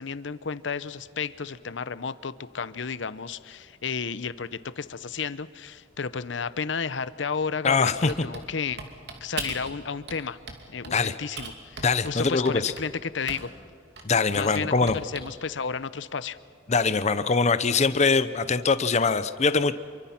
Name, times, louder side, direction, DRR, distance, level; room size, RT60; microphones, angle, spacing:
voice 1, 0.0-8.8 9.2-10.4 10.7-13.5 14.3-16.4, left 5 dB, 75° left, 16 dB, 0.8 m, -32 dB
voice 2, 7.6-8.1 10.9-11.2 11.8-12.7 14.0-15.0 16.7-19.7, left 4 dB, 35° left, 13 dB, 0.7 m, -23 dB
Typing, 7.9-9.7 10.1-11.0 11.4-13.6 14.0-15.4, right 4 dB, 65° right, 2.8 m, -39 dB
27.5 x 24.0 x 5.9 m, 2.3 s
head